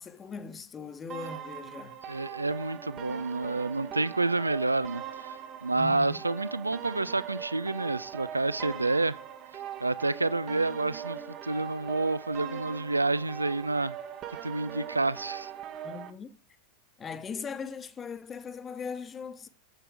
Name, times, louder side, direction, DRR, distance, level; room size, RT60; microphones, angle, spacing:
voice 1, 0.0-2.0 5.7-6.2 15.8-16.3 17.0-19.5, left 5 dB, 20° left, 0.9 m, -39 dB
sound 1, 1.1-16.1, right 9 dB, 35° right, 1.0 m, -41 dB
voice 2, 2.1-9.2 9.8-14.0 14.4-15.5, right 2 dB, 80° right, 0.3 m, -29 dB
7.9 x 7.5 x 4.8 m
figure-of-eight pair, 90°, 0 cm